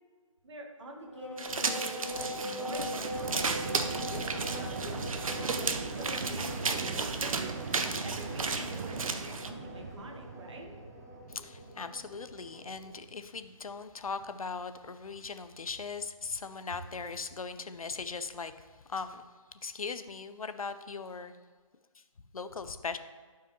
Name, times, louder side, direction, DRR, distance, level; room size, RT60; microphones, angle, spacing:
voice 1, 0.4-5.0 5.3-7.5 8.0-10.7, right 1 dB, 55° right, 2 dB, 1.5 m, -46 dB
sound 1, 1.0-12.9, left 1 dB, 30° left, 1.3 m, -42 dB
sound 2, 1.4-9.5, right 4 dB, 75° right, 0.6 m, -34 dB
sound 3, 3.1-13.8 14.2-14.3, right 5 dB, 30° right, 0.5 m, -41 dB
voice 2, 11.3-19.2 19.6-21.3 22.3-23.0, left 5 dB, 85° left, 10 dB, 0.6 m, -39 dB
12.0 x 4.8 x 3.0 m, 1.5 s
figure-of-eight pair, 155°, 18 cm